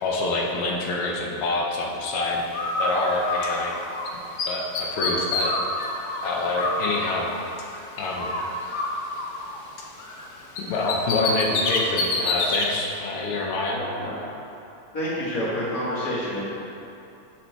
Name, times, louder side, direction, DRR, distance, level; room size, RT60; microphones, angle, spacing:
voice 1, 0.0-2.4 2.8-3.7 4.5-5.5 6.2-7.3 8.0-8.3 10.6-13.8, left 2 dB, 90° left, -1 dB, 1.7 m, -26 dB
Bird, 2.5-4.1 4.4-7.8 8.2-10.3 10.6-12.7, left 2 dB, 65° left, 1.1 m, -27 dB
voice 2, 13.7-14.1 14.9-16.5, equal, 45° left, -7 dB, 1.9 m, -28 dB
7.8 x 6.1 x 3.4 m, 2.8 s
omnidirectional pair, 2.4 m